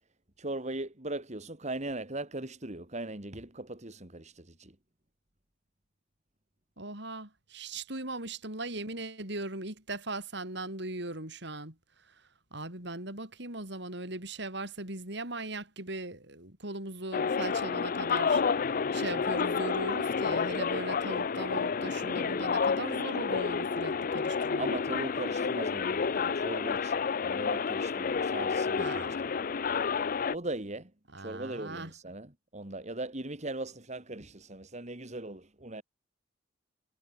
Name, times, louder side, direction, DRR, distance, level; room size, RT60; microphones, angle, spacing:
voice 1, 0.4-4.8 24.6-28.9 29.2-29.6 30.3-30.9 31.2-35.8, right 2 dB, 40° right, 2.7 m, -39 dB
voice 2, 6.8-11.8 12.1-12.2 12.5-18.4 18.9-24.7 28.8-29.2 31.1-31.9, right 2 dB, 65° right, 7.1 m, -39 dB
sound 1, 17.1-30.4, left 5 dB, 45° left, 0.5 m, -30 dB
head